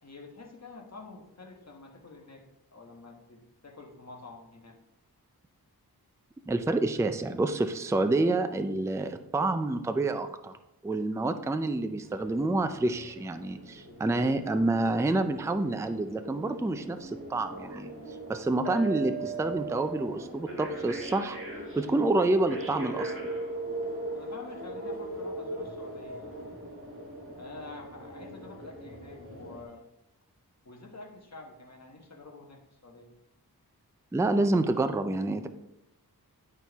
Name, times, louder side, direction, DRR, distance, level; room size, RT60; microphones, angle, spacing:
voice 1, 0.0-2.5 2.7-4.8 24.1-26.4 27.4-29.8 30.6-33.1, left 3 dB, 45° left, 1 dB, 1.3 m, -48 dB
voice 2, 6.5-10.6 10.8-17.9 18.3-21.4 21.8-23.2 34.1-35.5, right 2 dB, 10° right, 9 dB, 0.4 m, -28 dB
sound 1, 12.0-29.6, right 2 dB, 35° right, 1.7 m, -40 dB
10.5 x 4.4 x 3.5 m, 0.90 s
wide cardioid pair, 80°, 37 cm